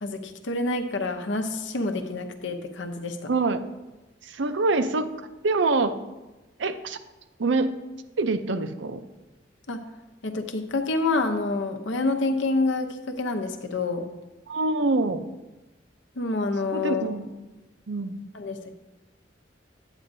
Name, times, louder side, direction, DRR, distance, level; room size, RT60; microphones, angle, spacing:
voice 1, 0.0-3.3 9.7-9.8 10.2-14.1 16.2-17.1 18.3-18.6, left 2 dB, 80° left, 5 dB, 0.8 m, -27 dB
voice 2, 3.3-3.6 4.2-6.0 6.6-7.0 7.4-7.7 8.2-9.0 14.5-15.3 16.7-17.3 17.9-18.2, right 3 dB, 75° right, 10 dB, 0.6 m, -25 dB
9.4 x 9.0 x 2.7 m, 1.1 s
head